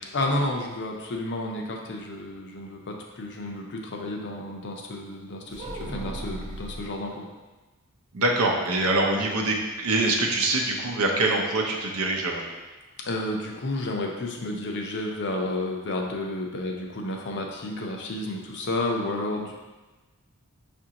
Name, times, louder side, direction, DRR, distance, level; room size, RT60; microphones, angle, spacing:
voice 1, 0.1-7.3 13.0-19.5, left 1 dB, 55° left, 1 dB, 0.6 m, -31 dB
sound 1, 5.5-6.9 8.7-9.6 9.9-10.0 10.4-10.6, right 1 dB, 35° right, 0.4 m, -37 dB
voice 2, 8.1-12.4, right 2 dB, 80° right, 0 dB, 0.7 m, -24 dB
5.9 x 2.6 x 2.8 m, 1.2 s
head